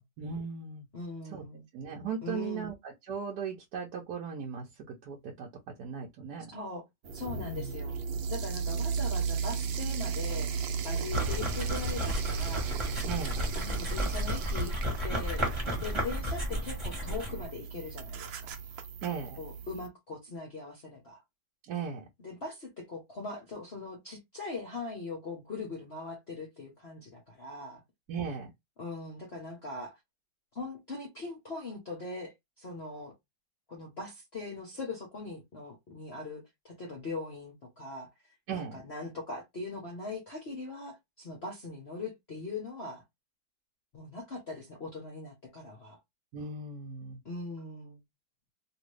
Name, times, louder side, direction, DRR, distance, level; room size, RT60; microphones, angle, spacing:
voice 1, 0.2-0.8 1.3-1.4 1.7-6.5 7.4-7.7 12.9-13.5 19.0-19.4 21.7-22.0 28.1-28.5 38.5-38.8 46.3-47.2, right 6 dB, 65° right, 1.2 m, -38 dB
voice 2, 0.9-1.6 2.2-2.7 6.5-6.8 7.1-8.0 8.3-10.5 10.8-12.7 13.6-14.7 15.0-15.5 15.8-18.6 19.4-21.2 22.2-27.8 28.8-30.0 30.5-33.1 33.7-38.1 38.5-43.0 43.9-46.0 47.2-48.0, left 3 dB, 50° left, 0.8 m, -40 dB
sound 1, 7.0-19.9, right 6 dB, 80° right, 1.4 m, -35 dB
sound 2, 11.1-17.4, equal, 20° right, 1.1 m, -33 dB
3.0 x 2.7 x 3.1 m
omnidirectional pair, 2.1 m